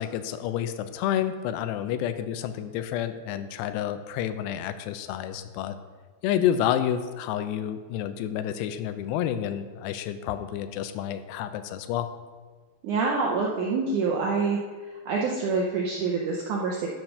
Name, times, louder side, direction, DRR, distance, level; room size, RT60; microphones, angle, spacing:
voice 1, 0.0-5.8 6.2-12.1, left 10 dB, 85° left, 11 dB, 2.7 m, -29 dB
voice 2, 12.8-14.6 15.0-16.9, right 4 dB, 90° right, -2 dB, 1.7 m, -26 dB
12.5 x 4.6 x 5.4 m, 1.4 s
omnidirectional pair, 4.8 m